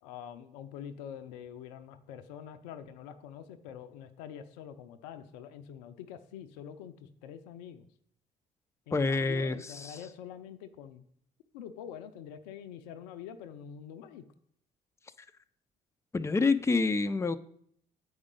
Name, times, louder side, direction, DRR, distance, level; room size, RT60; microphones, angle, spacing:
voice 1, 0.0-7.9 8.9-11.0 11.5-14.2, left 9 dB, 80° left, 10 dB, 0.5 m, -45 dB
voice 2, 8.9-10.0 16.1-17.4, left 3 dB, 15° left, 10 dB, 0.5 m, -27 dB
7.9 x 4.9 x 3.7 m, 0.67 s
hypercardioid pair, 50°, 21 cm